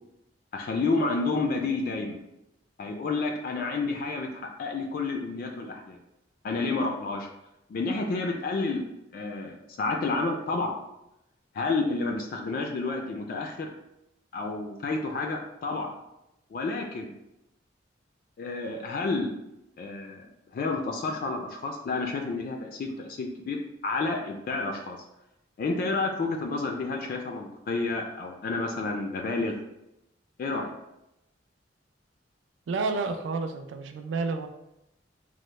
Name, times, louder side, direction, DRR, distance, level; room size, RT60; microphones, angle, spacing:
voice 1, 0.5-2.2 2.8-6.0 6.4-7.3 7.7-8.8 9.1-10.7 11.5-13.7 14.3-15.9 16.5-17.1 18.4-19.3 19.8-20.3 20.5-25.0 25.6-29.6 30.4-30.7, left 3 dB, 50° left, 3 dB, 0.3 m, -30 dB
voice 2, 32.7-34.5, right 4 dB, 70° right, 6 dB, 0.3 m, -30 dB
3.0 x 2.0 x 3.1 m, 0.87 s
head